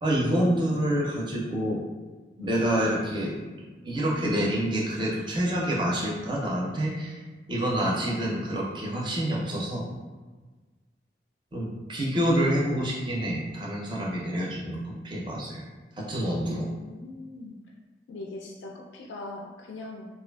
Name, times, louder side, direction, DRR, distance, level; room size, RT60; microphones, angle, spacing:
voice 1, 0.0-1.8 2.4-3.3 3.8-7.2 7.5-9.9 11.5-15.6 16.1-16.7, right 1 dB, 25° right, -3 dB, 0.4 m, -27 dB
voice 2, 16.4-17.6 18.1-20.1, left 2 dB, 80° left, 0 dB, 0.3 m, -41 dB
2.4 x 2.3 x 2.2 m, 1.3 s
head